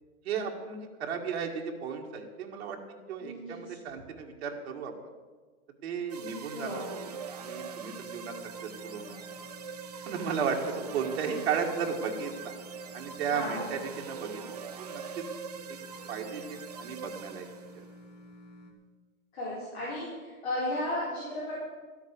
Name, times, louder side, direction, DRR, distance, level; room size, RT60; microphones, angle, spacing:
voice 1, 0.3-2.8 3.1-4.9 5.8-6.8 7.4-8.3 8.8-9.1 10.1-10.6 10.9-12.5 12.9-14.4 14.8-15.2 16.1-17.5 17.8-17.9, right 6 dB, 50° right, 1 dB, 1.8 m, -34 dB
voice 2, 3.2-3.7 6.5-6.9 10.8-10.9 13.3-13.7 19.3-21.5, left 1 dB, 50° left, -7 dB, 4.3 m, -35 dB
sound 1, 6.1-17.9, right 6 dB, 30° right, 0.4 m, -42 dB
sound 2, 6.7-18.7, left 1 dB, 25° left, 1.1 m, -51 dB
13.0 x 8.3 x 6.6 m, 1.4 s
hypercardioid pair, 165°, 42 cm